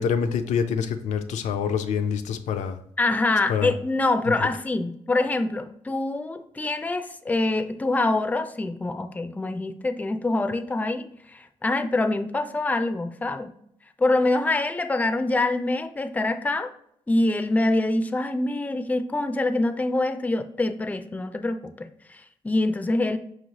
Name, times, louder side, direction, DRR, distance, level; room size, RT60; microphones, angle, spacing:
voice 1, 0.0-2.8 3.5-3.7 4.3-4.5, left 7 dB, 80° left, 7 dB, 0.4 m, -26 dB
voice 2, 3.0-13.5 14.0-16.7 17.1-22.2 22.4-23.2, left 2 dB, 10° left, 9 dB, 0.4 m, -25 dB
4.9 x 3.1 x 2.8 m, 0.70 s
cardioid pair, 70°, 12 cm